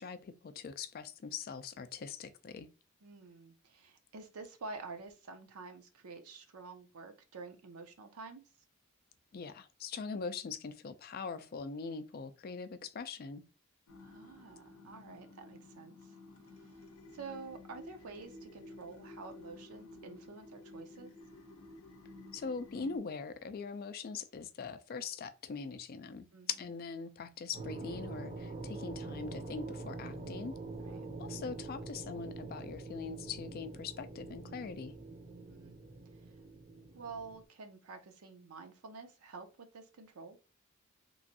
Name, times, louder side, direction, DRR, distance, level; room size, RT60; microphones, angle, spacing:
voice 1, 0.0-2.7 9.3-13.4 22.3-30.6 31.2-35.0, left 5 dB, 45° left, 0.3 m, -42 dB
voice 2, 3.0-8.4 14.0-16.1 16.6-16.7 17.1-21.1 26.3-26.5 30.8-31.1 35.4-35.8 36.2-36.3 36.9-40.4, right 4 dB, 85° right, 0.6 m, -49 dB
sound 1, 13.9-23.0, left 2 dB, 80° left, 0.6 m, -53 dB
sound 2, 27.5-37.4, right 3 dB, 30° right, 0.5 m, -45 dB
3.0 x 2.6 x 2.6 m
head